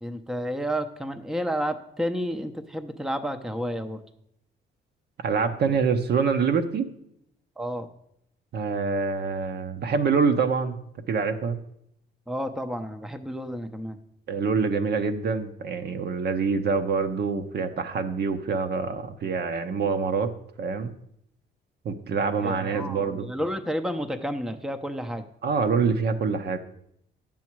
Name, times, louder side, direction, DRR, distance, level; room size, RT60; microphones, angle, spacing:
voice 1, 0.0-4.0 7.6-7.9 12.3-14.0 22.4-25.3, equal, ahead, 8 dB, 0.6 m, -31 dB
voice 2, 5.2-6.9 8.5-10.8 11.1-11.6 14.3-20.3 20.6-20.9 21.8-23.3 25.4-26.6, right 5 dB, 55° right, 7 dB, 0.9 m, -25 dB
9.6 x 7.3 x 4.6 m, 0.74 s
cardioid pair, 90°, 20 cm